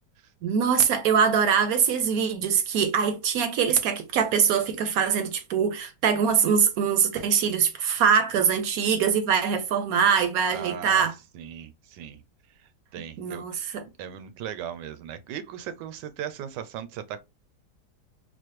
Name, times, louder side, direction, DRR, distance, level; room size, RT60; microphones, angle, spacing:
voice 1, 0.4-11.1 13.2-13.8, right 7 dB, 70° right, 0.9 m, -23 dB
voice 2, 10.5-11.1 11.3-12.2 12.9-13.4 14.0-17.2, right 9 dB, 85° right, 1.2 m, -37 dB
4.1 x 2.0 x 3.0 m
omnidirectional pair, 1.8 m